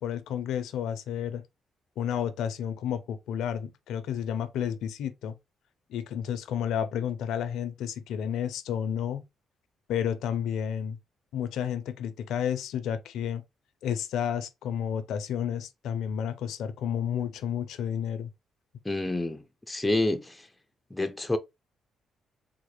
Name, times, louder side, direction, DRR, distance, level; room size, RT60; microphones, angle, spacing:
voice 1, 0.0-1.4 2.0-5.4 5.9-9.2 9.9-11.0 11.3-13.4 13.8-18.3, left 9 dB, 80° left, 0.5 m, -31 dB
voice 2, 18.9-20.4 20.9-21.4, left 2 dB, 10° left, 0.4 m, -28 dB
3.8 x 2.1 x 3.2 m
cardioid pair, 90°, 0 cm